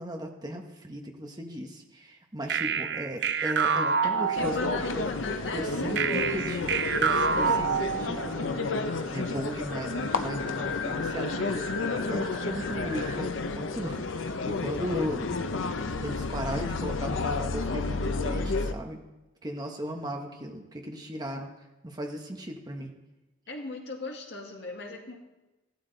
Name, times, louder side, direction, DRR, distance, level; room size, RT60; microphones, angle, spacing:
voice 1, 0.0-5.1 5.5-8.6 9.1-11.7 12.1-15.3 16.0-19.0 19.4-21.5 21.8-22.9, equal, 20° right, 2 dB, 1.2 m, -36 dB
sound 1, 2.5-5.0 6.0-8.5, right 6 dB, 55° right, 0.6 m, -27 dB
voice 2, 4.0-6.7 7.1-8.3 23.5-25.2, left 3 dB, 60° left, 1 dB, 1.9 m, -38 dB
sound 2, 4.4-18.7, left 3 dB, 75° left, 0.7 m, -31 dB
sound 3, 6.7-13.2, left 3 dB, 75° right, 4.1 m, -41 dB
16.0 x 12.5 x 4.0 m, 1.1 s
head